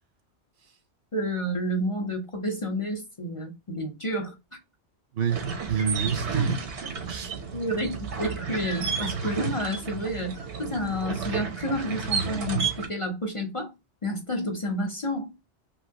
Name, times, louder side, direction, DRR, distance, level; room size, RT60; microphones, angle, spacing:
voice 1, 1.1-4.3 7.5-13.7 14.0-15.3, equal, 35° left, 0.7 m, -30 dB
voice 2, 5.1-7.3, right 7 dB, 65° right, 0.8 m, -30 dB
sound 1, 5.3-12.9, right 5 dB, 85° right, 1.2 m, -31 dB
3.1 x 2.7 x 2.8 m
omnidirectional pair, 1.1 m